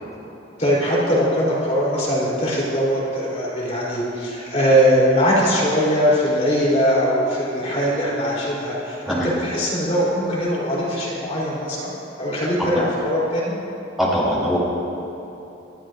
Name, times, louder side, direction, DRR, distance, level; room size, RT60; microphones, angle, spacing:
voice 1, 0.6-11.9 12.2-13.5, equal, 35° left, -6 dB, 3.5 m, -21 dB
voice 2, 14.0-14.6, equal, ahead, -8 dB, 3.4 m, -21 dB
25.5 x 12.5 x 2.5 m, 2.9 s
head